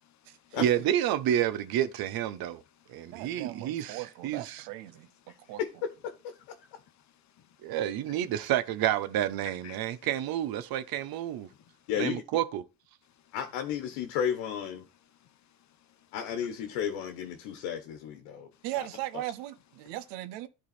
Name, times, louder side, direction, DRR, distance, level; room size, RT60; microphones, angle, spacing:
voice 1, 0.0-0.6 2.4-3.1 5.2-5.5 6.8-7.0 7.3-7.5 8.0-8.2 9.4-10.1 10.6-10.8 11.4-11.9 15.2-15.6 16.0-16.1 17.4-17.6, left 10 dB, 40° left, 0.9 m, -56 dB
voice 2, 0.6-2.6 2.9-4.6 7.6-11.5 12.0-12.6, right 11 dB, 55° right, 0.9 m, -29 dB
voice 3, 3.1-5.1 5.5-5.6 18.6-20.5, right 16 dB, 85° right, 1.0 m, -38 dB
voice 4, 11.9-12.2 13.3-14.8 16.1-18.9, left 8 dB, 85° left, 1.2 m, -33 dB
11.0 x 3.9 x 4.2 m
cardioid pair, 120°, 42 cm